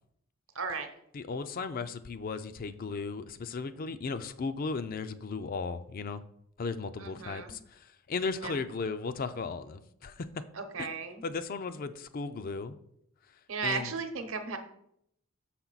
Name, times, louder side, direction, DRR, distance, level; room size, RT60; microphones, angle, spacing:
voice 1, 0.5-0.9 7.0-7.5 8.4-8.6 10.6-11.2 13.5-14.6, right 5 dB, 65° right, 0.9 m, -35 dB
voice 2, 1.1-6.2 6.6-10.3 10.8-10.9 11.2-12.7 13.6-13.9, left 4 dB, 40° left, 0.4 m, -36 dB
6.4 x 5.9 x 3.9 m
head